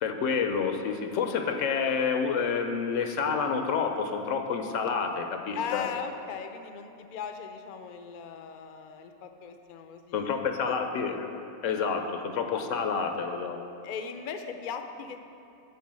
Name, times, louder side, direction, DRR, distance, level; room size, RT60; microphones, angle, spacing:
voice 1, 0.0-5.9 10.1-11.3 11.6-13.6, left 5 dB, 85° left, 5 dB, 1.1 m, -29 dB
voice 2, 5.5-11.2 12.5-12.6 13.8-15.3, left 7 dB, 55° left, 7 dB, 0.5 m, -39 dB
9.4 x 4.6 x 7.4 m, 2.7 s
omnidirectional pair, 1.3 m